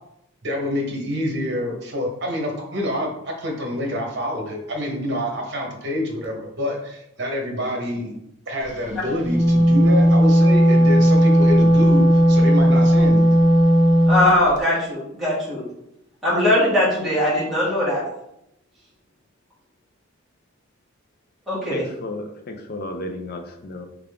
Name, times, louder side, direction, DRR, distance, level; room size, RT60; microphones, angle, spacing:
voice 1, 0.4-8.2 8.5-13.2, left 1 dB, 55° right, 1 dB, 1.0 m, -27 dB
Wind instrument woodwind instrument, 9.1-14.2, equal, 35° right, 0.7 m, -15 dB
voice 2, 14.1-15.6 16.2-18.0 21.5-21.8, left 1 dB, ahead, -10 dB, 1.5 m, -20 dB
voice 3, 21.7-23.9, left 2 dB, 45° left, 4 dB, 0.5 m, -33 dB
3.6 x 3.4 x 3.5 m, 0.80 s
head